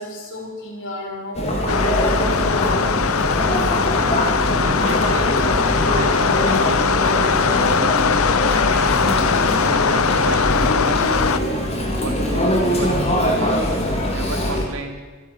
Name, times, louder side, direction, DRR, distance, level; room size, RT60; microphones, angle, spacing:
voice 1, 0.0-2.5, equal, 60° left, -2 dB, 5.8 m, -33 dB
Chatter, 1.3-14.6, equal, 30° left, 4.0 m, -22 dB
sound 1, 1.7-11.4, left 6 dB, 90° left, 0.8 m, -20 dB
voice 2, 4.6-5.4 5.8-8.1 8.5-9.2 9.7-11.5 12.0-13.6 14.1-15.0, right 3 dB, 80° right, 4 dB, 3.2 m, -32 dB
28.0 x 11.5 x 9.1 m, 1.3 s
head